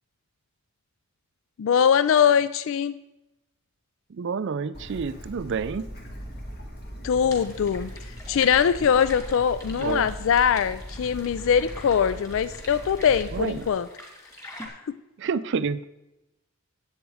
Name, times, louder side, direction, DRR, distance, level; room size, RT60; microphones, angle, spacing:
voice 1, 1.6-3.0 7.0-7.9 8.3-13.9 14.9-15.0, left 7 dB, 60° left, 14 dB, 0.3 m, -22 dB
voice 2, 4.1-5.9 9.7-10.1 13.3-13.7 15.2-15.9, right 5 dB, 55° right, 14 dB, 0.4 m, -29 dB
Bird / Stream, 4.7-13.7, equal, 45° left, 2.0 m, -40 dB
sound 1, 7.3-14.7, left 1 dB, 15° left, 2.5 m, -45 dB
10.0 x 8.2 x 4.8 m, 0.98 s
head